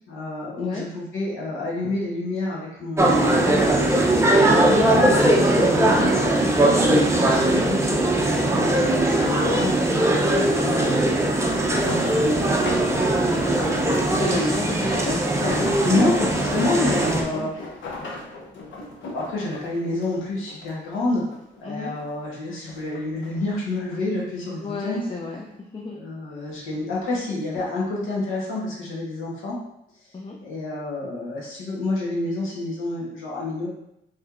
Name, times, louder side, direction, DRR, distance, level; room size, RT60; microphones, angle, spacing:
voice 1, 0.1-8.0 8.5-11.1 15.8-17.7 18.2-18.7 19.1-21.2 21.6-25.0 25.9-29.6 30.4-33.7, left 2 dB, 85° left, -4 dB, 1.3 m, -28 dB
sound 1, 3.0-17.2, right 1 dB, 15° right, 0.7 m, -20 dB
sound 2, 11.6-21.0 21.3-22.3 22.7-24.0 24.7-25.0 25.5-25.6, left 2 dB, 70° left, 0.8 m, -36 dB
voice 2, 11.7-12.6 13.8-15.2 17.3-17.5 21.6-21.9 24.6-25.5 25.7-26.0 30.1-30.4, left 3 dB, 25° left, -1 dB, 0.5 m, -33 dB
4.6 x 3.2 x 2.5 m, 0.80 s
cardioid pair, 90°, 20 cm